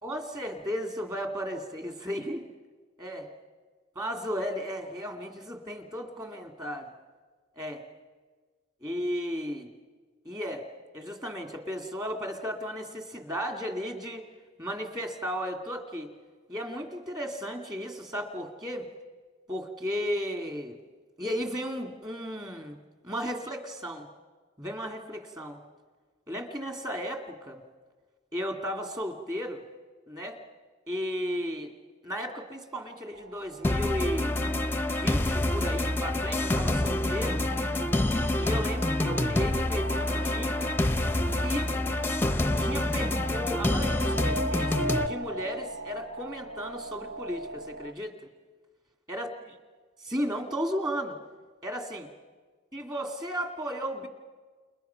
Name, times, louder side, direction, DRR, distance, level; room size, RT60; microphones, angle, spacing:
voice 1, 0.0-2.5 3.0-3.3 4.0-6.9 7.6-7.8 8.8-9.7 10.2-10.7 10.9-14.2 14.6-16.1 16.5-18.8 19.5-20.8 21.2-22.8 23.0-24.1 24.6-25.6 26.3-27.6 28.3-29.6 30.1-30.4 30.9-31.7 32.0-34.4 34.9-37.4 38.4-40.7 41.4-41.7 42.6-48.2 49.1-49.3 50.0-51.2 51.6-52.1 52.7-54.1, equal, 20° right, 4 dB, 2.4 m, -34 dB
sound 1, 33.1-47.9, right 1 dB, 60° right, 1.1 m, -40 dB
sound 2, 33.6-45.1, left 1 dB, 10° left, 0.7 m, -27 dB
29.5 x 29.5 x 5.8 m, 1.4 s
head